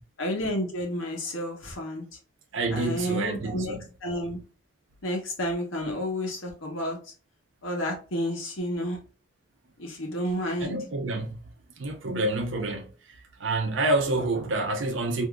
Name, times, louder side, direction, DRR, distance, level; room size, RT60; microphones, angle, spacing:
voice 1, 0.2-2.0 2.7-4.4 5.0-7.0 7.6-9.0 9.8-10.8, equal, 85° left, 1.1 m, -30 dB
voice 2, 2.5-3.9 10.6-11.5 11.8-15.3, right 2 dB, 70° right, 0.6 m, -28 dB
3.6 x 2.7 x 2.3 m
head